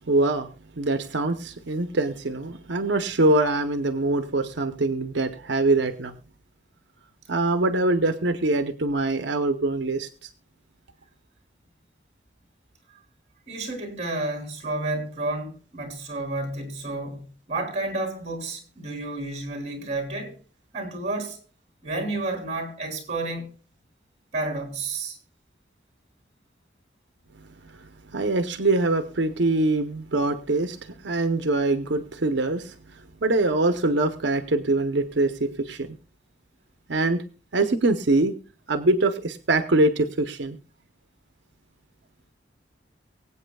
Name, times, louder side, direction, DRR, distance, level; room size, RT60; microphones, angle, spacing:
voice 1, 0.1-0.5 0.8-6.2 7.3-10.3 27.8-35.9 36.9-37.2 37.5-38.3 38.7-40.6, right 2 dB, 80° right, 0.8 m, -24 dB
voice 2, 13.5-20.4 20.7-21.4 21.8-23.5 24.3-25.2, right 2 dB, 35° right, 3.2 m, -31 dB
24.0 x 8.3 x 2.3 m
head